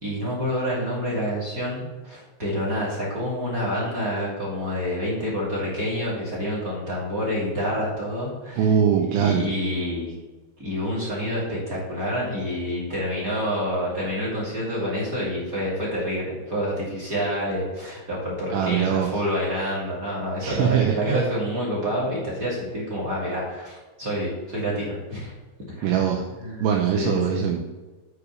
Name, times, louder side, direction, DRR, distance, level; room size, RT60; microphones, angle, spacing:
voice 1, 0.0-8.7 9.1-10.1 10.6-25.3 25.7-26.0 26.3-27.5, equal, 30° right, -5 dB, 1.6 m, -28 dB
voice 2, 8.6-9.5 18.5-19.1 20.4-21.2 25.8-26.3 26.6-27.6, right 8 dB, 80° right, 1 dB, 3.0 m, -22 dB
8.2 x 4.9 x 6.9 m, 1.2 s
omnidirectional pair, 5.7 m